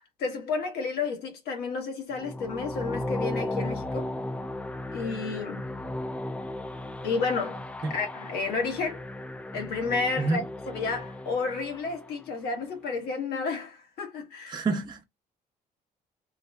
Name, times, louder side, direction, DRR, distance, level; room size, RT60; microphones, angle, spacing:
voice 1, 0.0-4.1 4.9-5.7 7.0-7.6 7.9-9.0 9.5-14.6, left 4 dB, 80° left, 1.3 m, -31 dB
sound 1, 2.1-12.2, left 1 dB, 10° left, 0.3 m, -36 dB
voice 2, 14.5-15.0, right 3 dB, 25° right, 0.8 m, -28 dB
3.1 x 2.1 x 3.4 m
cardioid pair, 130°, 16 cm